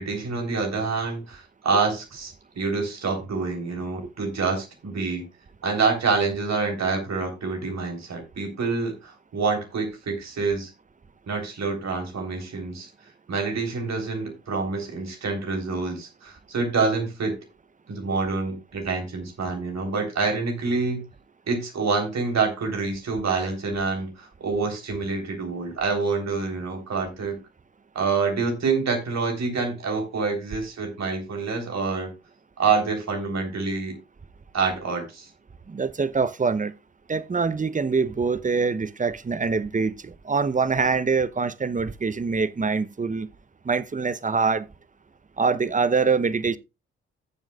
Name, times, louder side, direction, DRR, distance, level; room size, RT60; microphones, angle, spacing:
voice 1, 0.0-5.3 5.6-10.7 11.3-12.9 13.3-17.3 17.9-21.0 21.5-27.4 28.0-32.1 32.6-34.0 34.5-35.3, right 4 dB, 55° right, 3.7 m, -27 dB
voice 2, 35.7-36.7 37.1-43.3 43.6-44.7 45.4-46.6, right 4 dB, 25° right, 0.8 m, -24 dB
16.0 x 7.3 x 2.4 m
hypercardioid pair, 40°, 32 cm